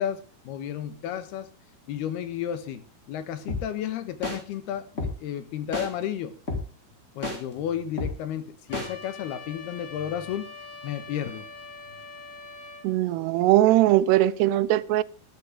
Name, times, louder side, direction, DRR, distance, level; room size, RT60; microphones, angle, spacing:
voice 1, 0.0-1.5 1.9-6.4 7.2-10.5 10.8-11.5, left 10 dB, 75° left, 3.4 m, -32 dB
sound 1, 3.5-3.6 4.2-4.4 5.0-5.1 5.7-5.9 6.5-6.6 7.2-7.4 8.0-8.1 8.7-8.9, left 3 dB, 15° left, 4.4 m, -29 dB
Trumpet, 8.7-12.9, left 3 dB, 35° left, 4.6 m, -43 dB
voice 2, 12.8-15.0, right 15 dB, 85° right, 2.9 m, -20 dB
14.5 x 13.5 x 3.7 m
omnidirectional pair, 4.8 m